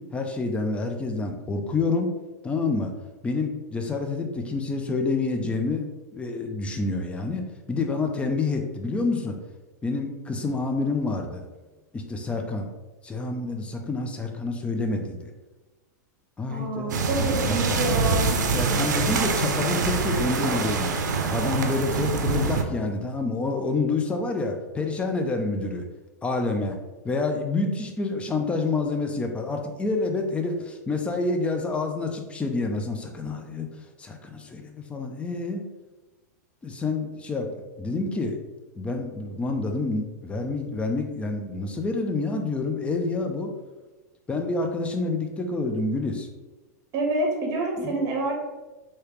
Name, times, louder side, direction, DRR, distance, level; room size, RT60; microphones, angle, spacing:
voice 1, 0.0-2.1 2.4-2.9 3.2-5.9 6.1-9.4 9.8-11.5 11.9-12.7 13.0-15.2 16.4-17.8 18.5-20.9 21.3-25.8 26.2-26.8 27.0-33.7 34.0-35.6 36.6-38.4 38.8-43.5 44.3-46.3 47.8-48.0, left 3 dB, 10° left, 4 dB, 0.5 m, -28 dB
voice 2, 16.5-18.4 46.9-48.4, right 2 dB, 40° right, 0 dB, 1.1 m, -27 dB
sound 1, 16.9-22.6, right 4 dB, 85° right, 0.5 m, -25 dB
3.2 x 2.8 x 3.2 m, 1.2 s
hypercardioid pair, 120°, 10 cm